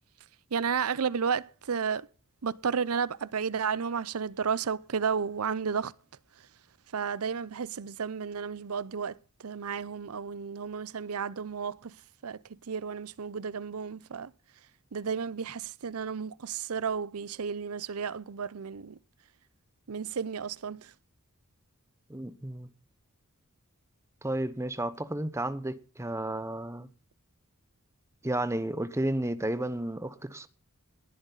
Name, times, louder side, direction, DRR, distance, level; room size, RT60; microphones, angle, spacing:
voice 1, 0.5-2.1 2.4-5.9 6.9-11.9 12.2-12.4 12.7-14.3 14.9-19.0 19.9-20.9, right 6 dB, 85° right, 0.6 m, -32 dB
voice 2, 22.1-22.7 24.2-26.9 28.2-30.5, right 1 dB, 15° right, 1.0 m, -32 dB
19.0 x 11.0 x 4.0 m
head